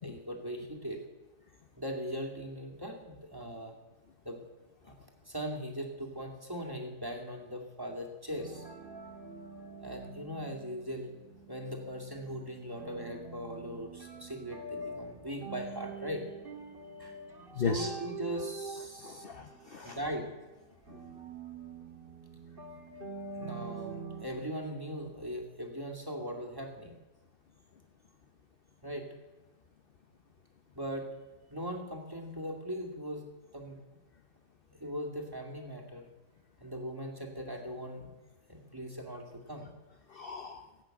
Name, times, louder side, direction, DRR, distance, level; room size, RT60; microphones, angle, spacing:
voice 1, 0.0-1.0 1.8-3.7 4.2-4.4 4.8-4.9 5.3-8.6 9.8-11.1 11.5-16.3 17.0-17.2 17.6-19.2 19.8-20.3 23.3-27.0 28.8-29.1 30.7-31.1 31.5-33.2 33.5-33.8 34.8-36.1 36.6-38.1 38.5-39.7, equal, 15° right, 1 dB, 2.3 m, -39 dB
sound 1, 8.3-24.3, right 4 dB, 35° right, 1.8 m, -45 dB
voice 2, 17.5-17.9 19.0-20.0 20.9-21.0 40.1-40.6, left 5 dB, 50° left, 7 dB, 0.7 m, -36 dB
16.0 x 8.7 x 7.8 m, 1.1 s
omnidirectional pair, 1.7 m